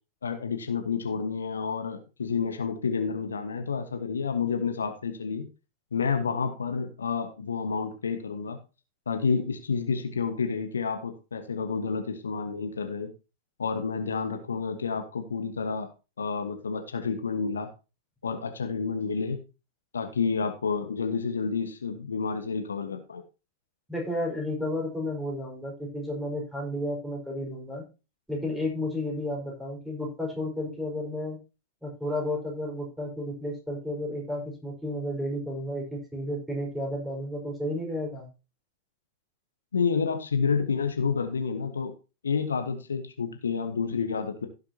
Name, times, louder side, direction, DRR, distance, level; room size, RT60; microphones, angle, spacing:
voice 1, 0.2-5.5 5.9-8.6 9.1-13.1 13.6-15.9 16.2-17.7 18.2-19.4 19.9-23.2 39.7-41.9 42.2-44.5, left 5 dB, 70° left, 6 dB, 1.4 m, -29 dB
voice 2, 23.9-27.8 28.3-31.4 31.8-38.3, left 1 dB, 5° right, -2 dB, 4.8 m, -32 dB
16.0 x 6.8 x 2.9 m, 0.30 s
figure-of-eight pair, 90°, 0 cm